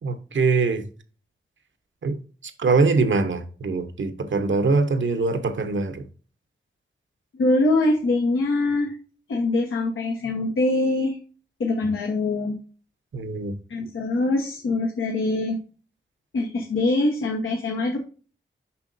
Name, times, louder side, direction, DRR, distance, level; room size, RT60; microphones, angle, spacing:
voice 1, 0.0-0.8 2.0-2.2 2.6-6.0 13.1-13.6, right 4 dB, 70° right, 1.0 m, -23 dB
voice 2, 7.3-9.0 9.3-11.2 11.6-12.5 13.7-15.6 16.3-18.0, left 2 dB, 90° left, 1.1 m, -23 dB
6.9 x 5.7 x 2.6 m
cardioid pair, 55°, 20 cm